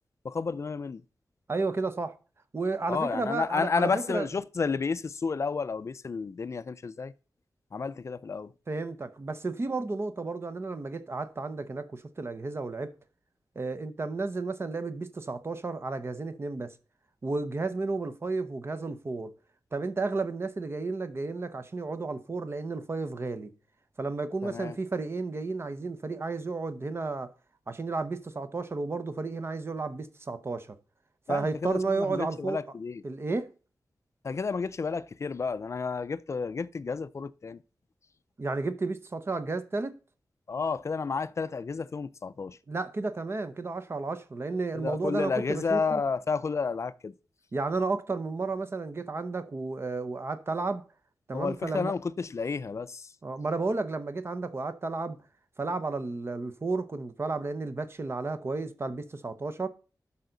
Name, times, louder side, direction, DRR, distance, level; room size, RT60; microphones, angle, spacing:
voice 1, 0.2-1.0 2.9-7.1 7.7-8.5 24.4-24.8 31.3-33.0 34.2-37.6 40.5-42.6 44.7-47.1 51.3-53.1, left 5 dB, 40° left, 0.4 m, -31 dB
voice 2, 1.5-2.2 2.5-4.3 8.7-12.9 13.5-16.7 17.2-19.3 19.7-23.5 24.0-27.3 27.7-30.8 31.3-32.6 33.0-33.5 38.4-40.0 42.7-46.0 47.5-50.8 51.3-51.9 53.2-55.2 55.6-59.7, right 3 dB, 35° right, 0.8 m, -32 dB
12.0 x 5.7 x 3.9 m
wide cardioid pair, 135°, 7 cm